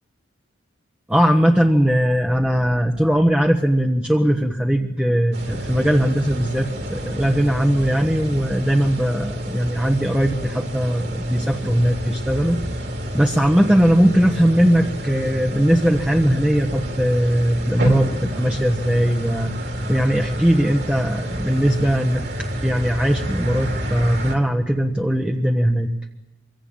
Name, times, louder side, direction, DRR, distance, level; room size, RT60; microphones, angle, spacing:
voice 1, 1.1-12.6 13.1-19.5 19.9-25.9, equal, 5° right, 2 dB, 1.1 m, -19 dB
sound 1, 5.3-24.4, equal, 55° right, 3.4 m, -28 dB
25.5 x 23.0 x 8.8 m, 0.98 s
head